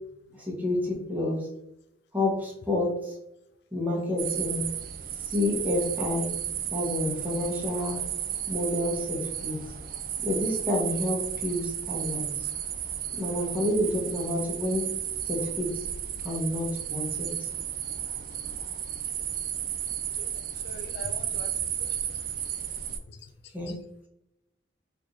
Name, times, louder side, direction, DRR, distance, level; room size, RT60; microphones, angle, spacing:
voice 1, 0.4-1.5 2.1-3.2 3.7-4.6 5.2-6.3 6.7-8.0 8.5-9.6 10.2-12.5 13.2-14.9 15.3-15.8 16.2-17.3 23.5-23.8, left 1 dB, 10° right, -3 dB, 1.0 m, -29 dB
sound 1, 4.2-23.0, right 10 dB, 50° right, 0.4 m, -33 dB
voice 2, 20.6-21.5 21.8-22.2 23.1-23.3 23.7-23.8, left 3 dB, 60° left, 9 dB, 0.4 m, -43 dB
3.3 x 2.6 x 3.8 m, 0.83 s
head